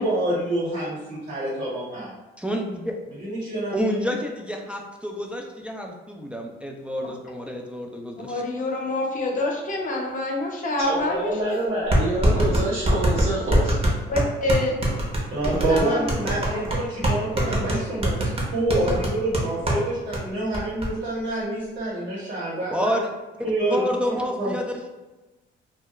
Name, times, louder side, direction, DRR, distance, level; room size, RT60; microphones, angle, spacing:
voice 1, 0.0-2.1 3.2-4.1 15.3-23.0 23.4-24.5, right 1 dB, 60° right, -6 dB, 1.2 m, -27 dB
voice 2, 2.4-2.9 3.7-8.4 22.7-23.1 23.7-24.9, equal, 5° right, 0 dB, 0.3 m, -29 dB
voice 3, 8.3-11.6 14.1-14.8 15.4-16.1 16.5-16.6, left 1 dB, 40° left, -1 dB, 0.7 m, -26 dB
voice 4, 10.8-13.7, right 1 dB, 80° right, -10 dB, 0.9 m, -26 dB
sound 1, 11.0-11.1 11.9-19.8 20.1-20.2 20.5-20.9, right 1 dB, 30° right, 0.7 m, -23 dB
2.3 x 2.1 x 2.9 m, 1.1 s
cardioid pair, 90°, 20 cm